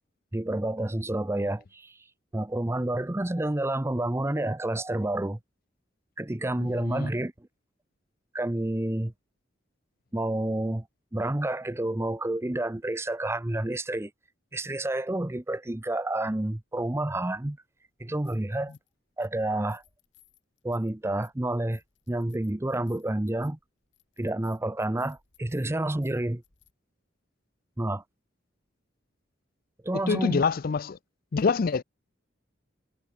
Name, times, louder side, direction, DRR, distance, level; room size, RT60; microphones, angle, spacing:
voice 1, 0.3-1.9 2.3-5.4 6.2-7.3 8.3-9.1 10.1-10.8 11.1-14.1 14.5-17.6 18.0-18.7 19.2-19.8 20.6-21.8 22.1-23.6 24.2-26.4 27.8-28.0 29.8-30.4, right 1 dB, 15° right, 0.6 m, -29 dB
voice 2, 6.6-7.1 30.1-31.0 31.3-31.8, left 5 dB, 50° left, 0.4 m, -26 dB
sound 1, 18.0-18.9 19.2-26.7, left 11 dB, 65° left, 4.0 m, -63 dB
head